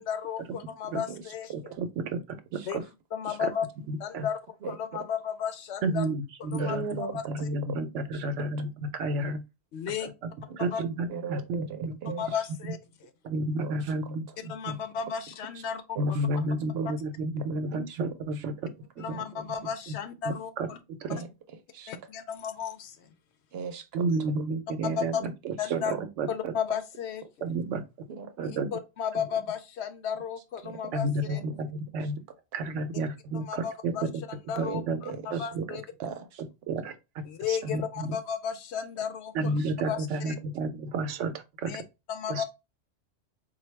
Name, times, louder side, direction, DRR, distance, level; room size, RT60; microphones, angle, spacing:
voice 1, 0.0-1.7 2.7-2.8 3.1-3.7 4.0-4.4 4.7-6.0 6.5-7.5 9.7-10.1 10.6-10.8 12.2-12.8 14.5-16.2 19.0-20.8 21.9-23.1 24.1-24.2 24.8-25.3 25.6-25.9 26.3-27.2 28.7-31.4 33.3-34.0 34.5-35.8 37.2-39.6 39.9-40.0 40.3-40.4 41.6-41.8 42.1-42.4, left 8 dB, 70° left, 0.8 m, -34 dB
voice 2, 1.5-2.2 2.5-2.8 3.4-3.5 3.9-4.3 5.8-7.0 7.3-9.4 10.0-10.3 10.6-12.1 13.2-14.8 16.0-18.7 19.0-20.0 20.3-21.2 23.9-26.5 27.4-27.8 28.4-28.7 29.1-29.3 30.9-32.2 32.5-34.2 34.5-35.0 35.3-35.7 36.7-38.1 39.3-41.8 42.3-42.4, right 2 dB, 90° right, 1.0 m, -31 dB
voice 3, 4.6-5.0 6.6-7.1 8.1-8.2 10.5-10.6 11.1-12.3 13.6-13.9 16.0-16.3 16.8-16.9 17.7-18.0 18.4-18.5 21.1-21.3 21.7-21.9 23.5-24.1 25.2-25.3 25.6-26.0 28.1-28.3 30.6-31.0 31.2-31.6 34.6-36.4 39.4-39.7, right 6 dB, 65° right, 0.8 m, -39 dB
4.0 x 2.2 x 3.2 m
omnidirectional pair, 1.2 m